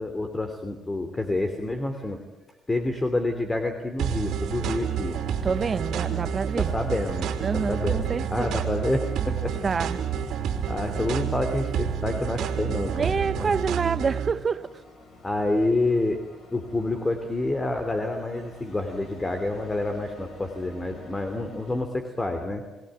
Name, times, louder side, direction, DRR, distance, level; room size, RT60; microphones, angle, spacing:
voice 1, 0.0-2.2 2.7-5.2 6.6-8.0 8.3-9.6 10.6-13.5 15.2-16.2 16.5-22.6, left 2 dB, 20° left, 3.1 m, -28 dB
sound 1, 4.0-14.3, right 8 dB, 80° right, 3.1 m, -29 dB
sound 2, 4.2-21.8, left 3 dB, 60° left, 7.7 m, -49 dB
sound 3, 4.6-11.6, left 2 dB, 40° left, 4.5 m, -50 dB
voice 2, 5.4-6.7 7.4-8.6 9.5-10.0 12.9-14.8, right 5 dB, 40° right, 1.0 m, -28 dB
28.5 x 19.0 x 9.2 m
cardioid pair, 90°, 0 cm